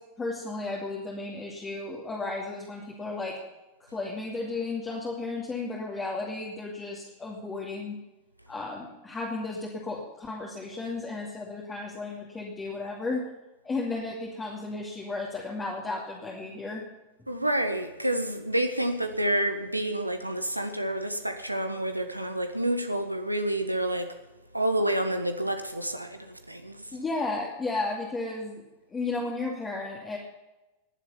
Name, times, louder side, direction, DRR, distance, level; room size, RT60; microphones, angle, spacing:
voice 1, 0.2-3.4 3.8-8.0 8.5-13.3 13.6-16.8 26.9-28.6 28.9-30.2, left 3 dB, 15° left, 2.6 m, -34 dB
voice 2, 17.3-24.2 24.5-27.0, right 1 dB, 85° right, 1.4 m, -29 dB
20.5 x 7.4 x 7.3 m
figure-of-eight pair, 90°, 0 cm